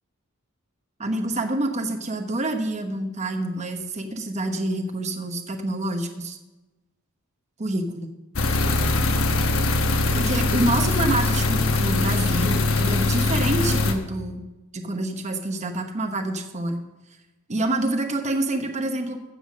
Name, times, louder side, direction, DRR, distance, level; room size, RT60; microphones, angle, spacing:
voice 1, 1.0-6.4 7.6-8.1 9.9-14.4 14.7-16.8 17.5-19.2, right 2 dB, 35° right, 4 dB, 0.9 m, -27 dB
sound 1, 8.4-13.9, left 3 dB, 70° left, 1.1 m, -22 dB
15.0 x 5.6 x 6.2 m, 1.1 s
head